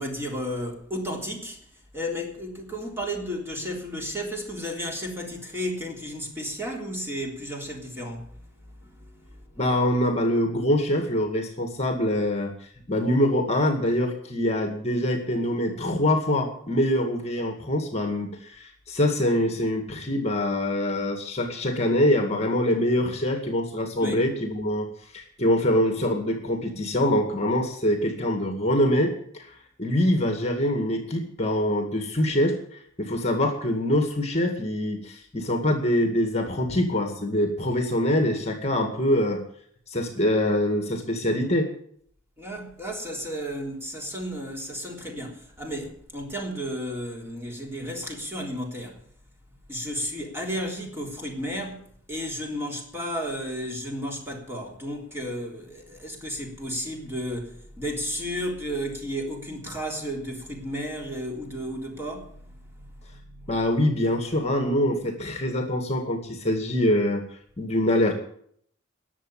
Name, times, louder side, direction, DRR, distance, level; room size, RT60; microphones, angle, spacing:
voice 1, 0.0-1.6 1.9-9.6 24.0-24.3 42.4-49.1 49.7-63.6, equal, 15° right, 3.6 m, -33 dB
voice 2, 9.6-12.5 12.9-24.9 25.1-29.5 29.8-32.6 33.0-39.4 39.9-41.7 63.5-67.2 67.6-68.1, left 1 dB, 35° left, 2.1 m, -24 dB
19.5 x 7.4 x 8.6 m
head